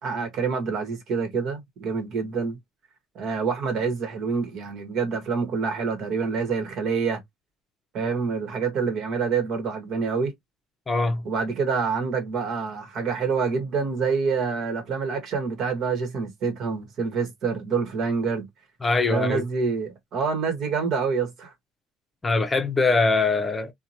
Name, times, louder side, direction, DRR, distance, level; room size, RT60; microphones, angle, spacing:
voice 1, 0.0-2.6 3.1-7.2 7.9-10.3 11.2-18.4 19.1-21.5, right 5 dB, 60° right, 1.1 m, -27 dB
voice 2, 10.9-11.2 18.8-19.4 22.2-23.7, left 3 dB, 25° left, 0.5 m, -22 dB
2.8 x 2.2 x 2.6 m
supercardioid pair, 85°, 0 cm